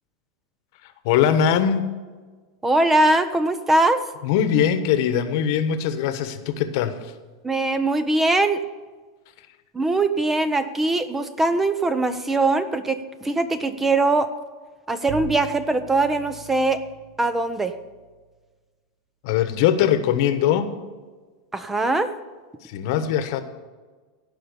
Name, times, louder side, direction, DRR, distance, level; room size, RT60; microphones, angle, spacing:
voice 1, 1.0-1.9 4.2-7.0 19.2-20.7 22.6-23.4, left 9 dB, 60° left, 10 dB, 1.1 m, -21 dB
voice 2, 2.6-4.0 7.4-8.6 9.7-14.3 14.9-16.8 17.2-17.7 21.5-22.1, right 2 dB, 10° right, 11 dB, 0.7 m, -21 dB
Bowed string instrument, 15.1-18.1, right 8 dB, 35° right, 0.9 m, -40 dB
16.5 x 5.5 x 6.8 m, 1.4 s
supercardioid pair, 135°, 2 cm